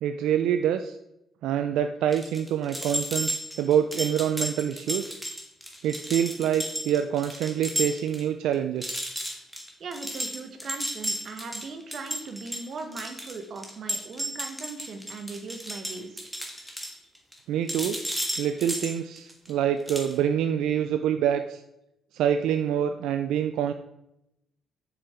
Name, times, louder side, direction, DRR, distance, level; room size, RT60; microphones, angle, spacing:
voice 1, 0.0-1.0 1.4-3.3 3.6-5.1 5.8-9.0 17.5-18.0 18.4-21.6 22.1-23.7, right 9 dB, 85° right, 8 dB, 0.4 m, -26 dB
sound 1, 2.1-8.2 8.5-8.6 8.8-17.4 17.7-19.5 19.9-20.1, equal, ahead, 1.7 m, -33 dB
voice 2, 9.8-16.2, right 4 dB, 55° right, 6 dB, 1.3 m, -39 dB
6.8 x 6.8 x 4.4 m, 0.85 s
cardioid pair, 90°, 0 cm